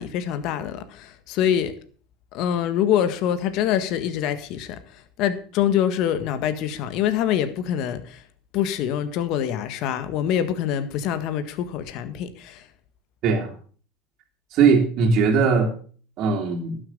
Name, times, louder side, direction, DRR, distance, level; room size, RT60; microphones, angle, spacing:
voice 1, 0.0-1.7 2.3-8.2 8.5-12.7, left 10 dB, 60° left, 11 dB, 1.7 m, -25 dB
voice 2, 13.2-13.5 14.5-15.7 16.2-16.8, right 5 dB, 55° right, -1 dB, 2.7 m, -19 dB
12.0 x 7.7 x 6.7 m, 0.43 s
supercardioid pair, 100°, 0 cm